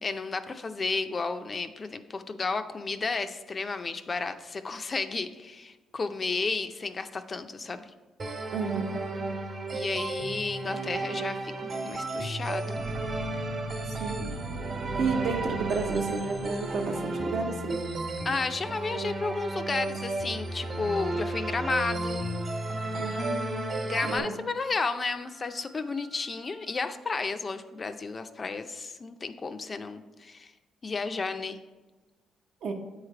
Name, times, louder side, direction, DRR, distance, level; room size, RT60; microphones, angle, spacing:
voice 1, 0.0-7.9 9.7-12.8 14.0-14.1 18.2-22.3 23.8-30.5 30.8-31.6, left 4 dB, 35° left, 9 dB, 0.4 m, -32 dB
sound 1, 8.2-24.2, right 2 dB, 45° right, 1.0 m, -33 dB
voice 2, 8.5-8.9 14.0-14.3 15.0-17.8 23.0-23.6 24.0-24.3 32.6-32.7, right 4 dB, 70° right, 3 dB, 0.9 m, -31 dB
sound 2, 12.7-18.2 19.4-20.4 20.8-20.9 23.4-23.5 23.9-27.0, right 3 dB, 85° right, 0.5 m, -42 dB
8.2 x 3.2 x 4.8 m, 1.2 s
cardioid pair, 90°, 0 cm